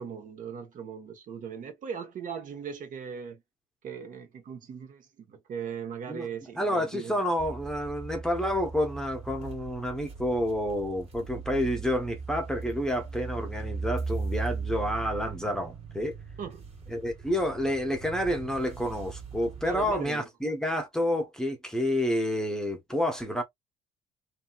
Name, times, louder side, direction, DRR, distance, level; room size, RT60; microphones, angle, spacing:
voice 1, 0.0-3.4 3.8-7.2 16.4-16.7 19.6-20.3, right 7 dB, 50° right, 1.0 m, -39 dB
voice 2, 6.6-16.2 16.9-23.4, equal, 5° left, 0.8 m, -29 dB
sound 1, 7.4-20.1, right 4 dB, 35° right, 1.5 m, -38 dB
2.7 x 2.7 x 2.3 m
cardioid pair, 110°, 17 cm